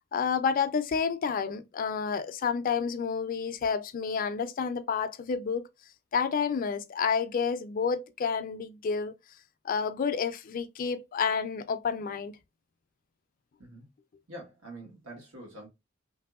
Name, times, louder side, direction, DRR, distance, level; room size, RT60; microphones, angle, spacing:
voice 1, 0.0-5.7 6.1-9.1 9.6-12.4, left 6 dB, 45° left, 0.4 m, -30 dB
voice 2, 14.3-15.7, right 1 dB, 90° right, 1.2 m, -45 dB
2.9 x 2.6 x 2.3 m
head